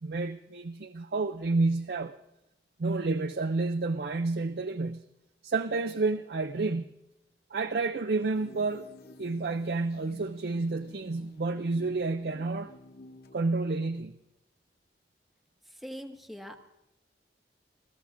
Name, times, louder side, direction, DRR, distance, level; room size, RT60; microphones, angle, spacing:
voice 1, 0.0-2.1 2.8-5.1 5.4-6.9 7.5-8.9 9.2-12.7 13.3-14.2, right 3 dB, 60° right, 0.5 m, -30 dB
sound 1, 8.3-13.4, left 1 dB, 60° left, 0.8 m, -52 dB
voice 2, 15.7-16.7, equal, ahead, 1.1 m, -43 dB
30.0 x 15.0 x 2.6 m
head